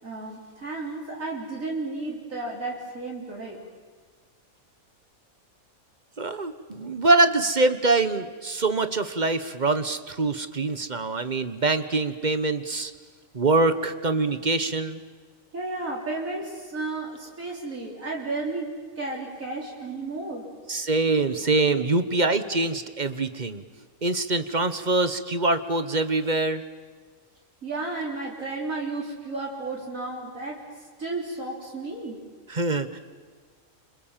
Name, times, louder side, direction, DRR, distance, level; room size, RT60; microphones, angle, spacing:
voice 1, 0.0-3.6 15.5-20.5 27.6-30.7 31.0-32.2, right 3 dB, 70° right, -3 dB, 4.2 m, -33 dB
voice 2, 6.2-12.9 13.3-15.0 20.7-23.6 24.0-26.6 32.5-33.0, right 3 dB, 35° right, 11 dB, 1.2 m, -24 dB
29.5 x 26.0 x 7.5 m, 1.5 s
omnidirectional pair, 1.4 m